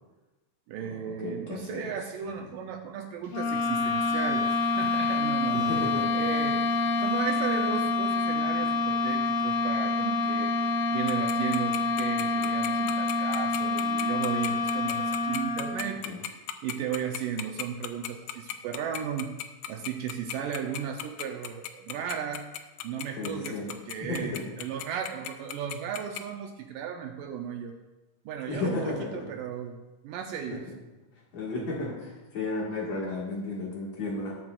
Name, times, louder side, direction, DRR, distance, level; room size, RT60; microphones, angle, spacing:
voice 1, 0.7-5.7 6.1-6.7 7.0-16.4 16.6-19.3 19.7-22.5 22.8-27.8 28.3-29.8 30.0-30.6, right 8 dB, 75° right, 3 dB, 2.2 m, -35 dB
voice 2, 1.2-1.9 2.4-2.5 5.5-6.1 16.0-16.2 23.1-23.7 24.0-24.5 28.5-29.1 30.5-30.6 31.3-34.4, left 2 dB, 55° left, -3 dB, 2.7 m, -33 dB
sound 1, 3.3-16.0, left 3 dB, 70° left, 2.6 m, -27 dB
Tick-tock, 11.1-26.2, left 13 dB, 90° left, 2.5 m, -35 dB
19.5 x 7.7 x 2.4 m, 1.1 s
omnidirectional pair, 4.3 m